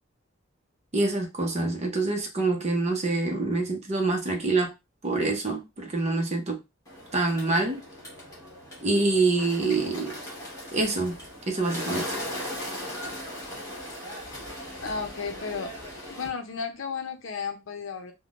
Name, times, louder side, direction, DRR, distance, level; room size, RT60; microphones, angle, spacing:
voice 1, 0.9-4.7 5.0-6.6 7.1-7.8 8.8-10.2 10.7-11.1 11.5-12.1, right 3 dB, 35° right, 0.7 m, -26 dB
Bird, 6.8-16.3, left 1 dB, 15° left, 1.3 m, -38 dB
voice 2, 14.8-15.7 16.1-18.1, left 5 dB, 70° left, 0.6 m, -33 dB
3.6 x 2.2 x 2.4 m
head